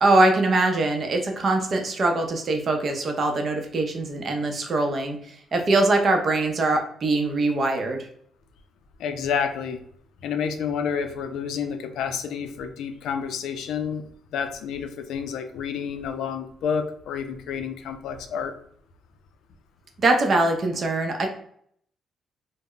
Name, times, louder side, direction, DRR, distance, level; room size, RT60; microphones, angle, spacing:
voice 1, 0.0-8.0 20.0-21.3, right 2 dB, 45° right, 3 dB, 0.6 m, -22 dB
voice 2, 9.0-9.8 10.2-14.0 14.3-18.5, left 7 dB, 80° left, 7 dB, 0.3 m, -29 dB
2.1 x 2.0 x 3.6 m, 0.65 s
cardioid pair, 90°, 0 cm